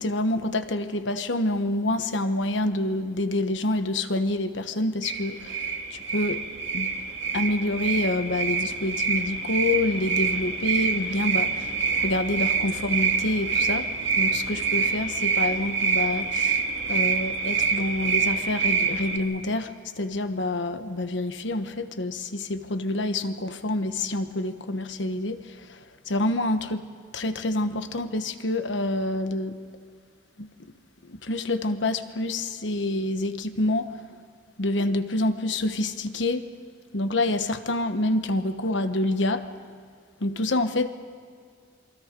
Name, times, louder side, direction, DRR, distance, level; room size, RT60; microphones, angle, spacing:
voice 1, 0.0-6.4 6.7-6.9 7.3-11.8 12.0-13.9 14.2-16.6 16.9-26.8 27.1-29.6 30.4-30.5 31.0-34.0 34.6-36.4 36.9-39.4 40.2-40.9, left 2 dB, 75° left, 10 dB, 1.2 m, -27 dB
sound 1, 5.0-19.2, right 5 dB, 65° right, 2.1 m, -26 dB
28.0 x 22.5 x 5.2 m, 2.1 s
head